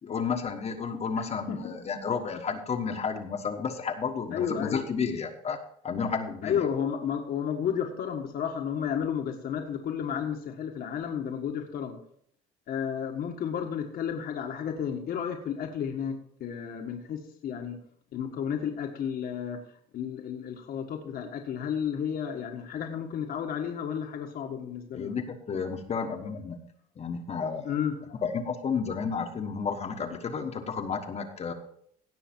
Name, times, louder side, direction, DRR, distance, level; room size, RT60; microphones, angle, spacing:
voice 1, 0.0-5.6 5.8-6.7 24.9-26.6 27.0-27.7 28.2-31.5, left 5 dB, 40° left, 3 dB, 1.4 m, -32 dB
voice 2, 1.2-1.6 4.3-4.8 6.4-12.0 12.7-16.1 16.4-17.8 18.1-19.6 19.9-25.1 27.6-28.2, left 8 dB, 65° left, 2 dB, 1.6 m, -32 dB
17.0 x 6.4 x 4.5 m, 0.65 s
cardioid pair, 110°, 17 cm